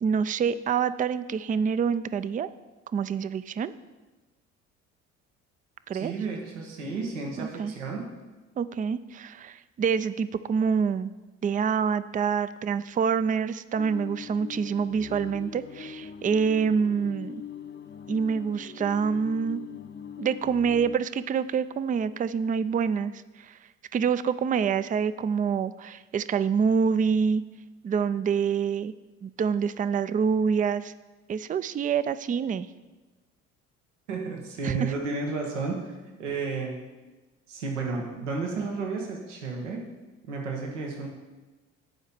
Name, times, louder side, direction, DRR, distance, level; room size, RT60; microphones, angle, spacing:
voice 1, 0.0-2.5 2.9-3.7 5.9-6.1 7.4-7.7 8.6-11.1 11.4-17.4 18.1-19.6 20.2-23.6 23.9-27.4 27.8-28.9 29.2-30.9 31.3-32.7 34.6-34.8, right 6 dB, 25° right, 15 dB, 0.4 m, -26 dB
voice 2, 6.0-8.1 34.1-36.8 37.5-39.8 40.3-41.1, right 4 dB, 90° right, 0 dB, 1.3 m, -32 dB
sound 1, 13.8-21.0, left 8 dB, 30° left, 0.7 m, -41 dB
10.5 x 4.8 x 7.0 m, 1.2 s
hypercardioid pair, 60°, 35 cm